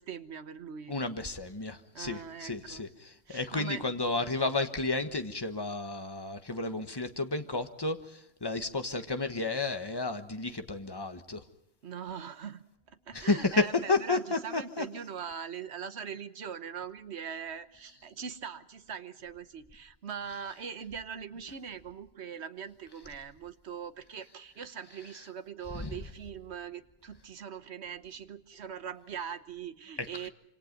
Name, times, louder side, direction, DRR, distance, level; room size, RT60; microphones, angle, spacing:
voice 1, 0.0-0.9 1.9-2.8 3.3-3.8 11.8-30.3, right 7 dB, 80° right, 11 dB, 1.4 m, -41 dB
voice 2, 0.9-11.4 13.1-14.8 25.7-26.0, left 3 dB, 20° left, 7 dB, 1.4 m, -32 dB
26.5 x 26.5 x 5.3 m, 0.80 s
omnidirectional pair, 1.1 m